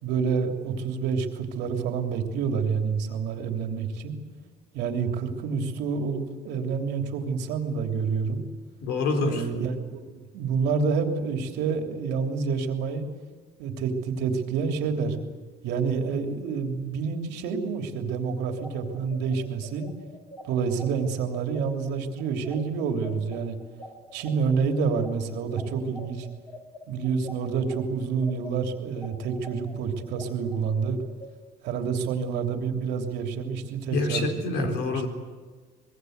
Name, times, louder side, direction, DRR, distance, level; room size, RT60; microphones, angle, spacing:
voice 1, 0.0-4.1 4.7-8.4 9.2-13.0 13.6-15.2 15.6-19.9 20.4-23.6 24.1-26.3 26.9-31.0 31.6-35.1, right 5 dB, 90° right, 4 dB, 3.1 m, -28 dB
voice 2, 8.8-9.5 33.9-35.1, left 3 dB, 85° left, 6 dB, 4.1 m, -26 dB
sound 1, 18.4-27.8 28.2-31.3, left 1 dB, 30° left, 4.6 m, -44 dB
24.5 x 21.5 x 8.1 m, 1.4 s
cardioid pair, 110°, 17 cm